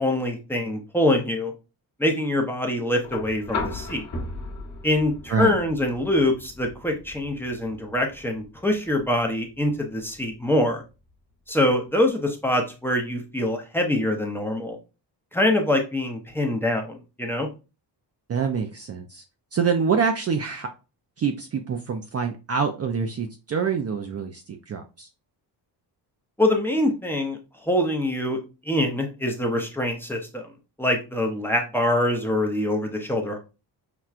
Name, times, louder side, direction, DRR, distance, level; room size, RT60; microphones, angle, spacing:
voice 1, 0.0-1.5 2.0-4.0 4.8-10.8 11.5-14.8 15.3-17.5 26.4-28.4 28.6-30.5 30.8-33.4, left 1 dB, 5° left, 1 dB, 0.6 m, -24 dB
sound 1, 3.0-11.1 12.5-12.6, left 3 dB, 40° left, 1.2 m, -37 dB
voice 2, 18.3-19.2 19.5-20.7 21.2-25.1, right 6 dB, 35° right, 5 dB, 0.4 m, -26 dB
5.8 x 2.2 x 2.4 m, 0.30 s
cardioid pair, 120°, 42 cm